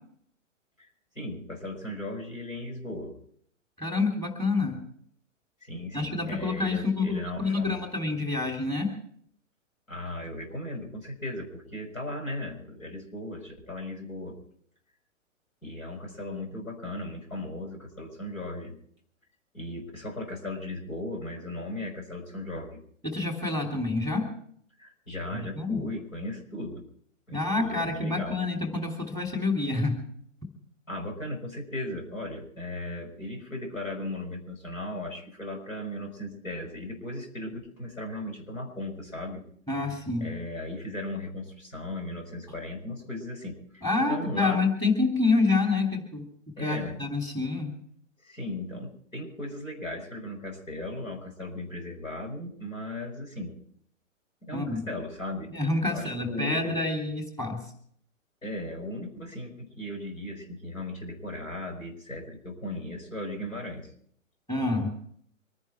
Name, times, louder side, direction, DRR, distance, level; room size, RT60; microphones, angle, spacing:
voice 1, 1.2-3.1 5.6-7.8 9.9-14.4 15.6-18.8 19.5-22.8 24.8-26.8 27.3-28.4 30.9-39.4 39.8-39.9 40.2-44.7 46.6-47.0 48.2-53.5 54.4-55.5 55.9-56.8 58.4-63.9, left 1 dB, 85° left, 2 dB, 5.6 m, -37 dB
voice 2, 3.8-4.8 5.9-8.9 23.0-24.3 25.3-25.8 27.3-30.0 39.7-40.3 43.8-46.2 46.6-47.7 54.5-54.9 55.5-57.6 64.5-64.9, left 3 dB, 10° left, 4 dB, 3.1 m, -27 dB
25.0 x 10.5 x 4.5 m, 0.63 s
figure-of-eight pair, 130°, 39 cm